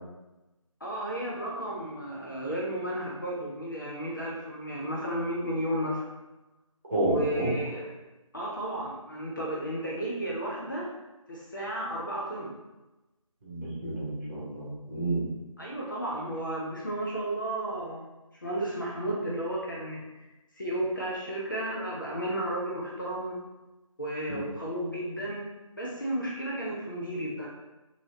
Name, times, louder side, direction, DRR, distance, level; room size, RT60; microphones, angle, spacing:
voice 1, 0.8-6.1 7.1-7.9 8.3-10.9 11.3-12.5 15.6-18.1 18.4-20.3 20.6-23.4 24.0-25.5 25.8-27.5, right 1 dB, 35° left, -4 dB, 0.5 m, -33 dB
voice 2, 6.9-7.5 13.4-15.2, right 1 dB, 30° right, -8 dB, 1.1 m, -30 dB
2.9 x 2.7 x 2.7 m, 1.0 s
figure-of-eight pair, 160°, 18 cm